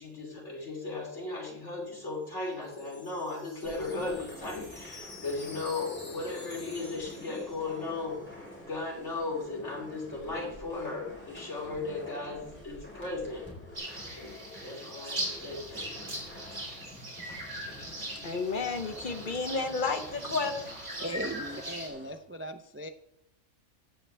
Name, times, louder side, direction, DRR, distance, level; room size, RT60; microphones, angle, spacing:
voice 1, 0.0-13.5 14.1-16.1 16.7-16.9 17.3-17.4, left 3 dB, 65° left, -2 dB, 3.6 m, -37 dB
Wind chime, 2.1-8.1, left 2 dB, 25° left, 3.5 m, -50 dB
sound 1, 3.6-22.1, left 1 dB, 10° left, 4.1 m, -48 dB
sound 2, 13.7-21.9, right 1 dB, 70° right, 4.0 m, -40 dB
voice 2, 18.2-20.7, left 4 dB, 45° left, 7 dB, 1.1 m, -31 dB
voice 3, 21.0-22.9, equal, 20° right, 7 dB, 0.3 m, -38 dB
15.0 x 9.1 x 3.4 m, 0.76 s
omnidirectional pair, 1.3 m